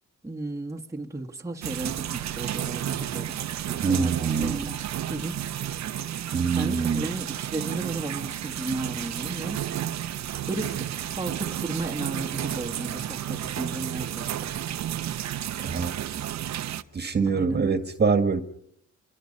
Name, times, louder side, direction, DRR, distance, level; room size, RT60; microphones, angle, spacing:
voice 1, 0.2-3.3 3.7-4.6 5.1-5.5 6.6-9.6 10.5-14.5 17.3-17.6, right 2 dB, 10° right, 1.8 m, -34 dB
sound 1, 1.6-16.8, right 11 dB, 65° right, 1.0 m, -32 dB
voice 2, 3.8-4.7 6.3-7.1 15.6-16.0 16.9-18.4, right 5 dB, 35° right, 1.9 m, -24 dB
26.5 x 23.5 x 5.5 m
cardioid pair, 90°, 30 cm